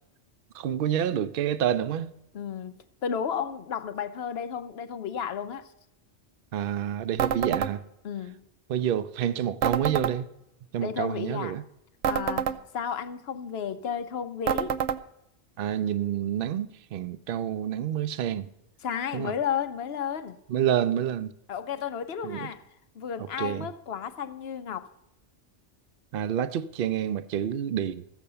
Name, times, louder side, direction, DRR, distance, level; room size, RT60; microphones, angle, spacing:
voice 1, 0.5-2.1 6.5-7.8 8.7-10.3 10.7-11.6 15.6-18.5 19.1-19.3 20.5-21.3 22.2-22.5 23.2-23.7 26.1-28.0, right 10 dB, 60° right, 0.7 m, -28 dB
voice 2, 2.3-2.8 3.0-5.7 8.0-8.4 10.8-11.5 12.1-14.8 18.8-20.4 21.5-22.6 22.9-24.9, left 8 dB, 65° left, 1.0 m, -33 dB
sound 1, 7.2-7.7 9.6-10.2 12.0-12.6 14.5-15.0, right 8 dB, 90° right, 0.9 m, -27 dB
14.5 x 7.1 x 6.8 m
omnidirectional pair, 1.2 m